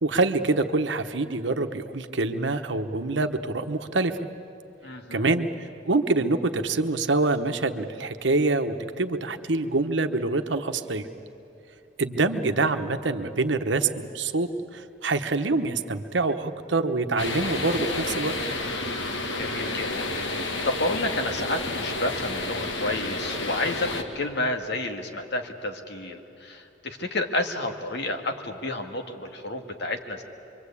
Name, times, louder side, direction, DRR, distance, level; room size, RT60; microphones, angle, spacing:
voice 1, 0.0-4.2 5.1-5.5 5.9-11.1 12.0-18.3, right 3 dB, 85° right, 8 dB, 1.1 m, -25 dB
voice 2, 4.8-5.3 19.4-20.1 20.4-30.2, left 2 dB, 65° left, 4 dB, 2.0 m, -30 dB
sound 1, 17.2-24.0, left 2 dB, 90° left, 1.8 m, -30 dB
25.0 x 24.5 x 8.5 m, 2.7 s
head